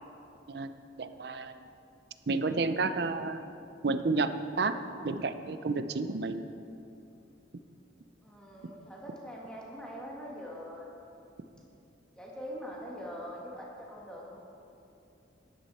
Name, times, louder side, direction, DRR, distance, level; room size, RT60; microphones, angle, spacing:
voice 1, 1.0-1.6 2.3-3.4 3.8-4.8 5.0-6.5, right 3 dB, 60° right, 10 dB, 0.5 m, -31 dB
voice 2, 8.2-10.9 12.1-14.4, equal, 5° left, -4 dB, 1.9 m, -43 dB
13.5 x 10.5 x 4.3 m, 2.7 s
head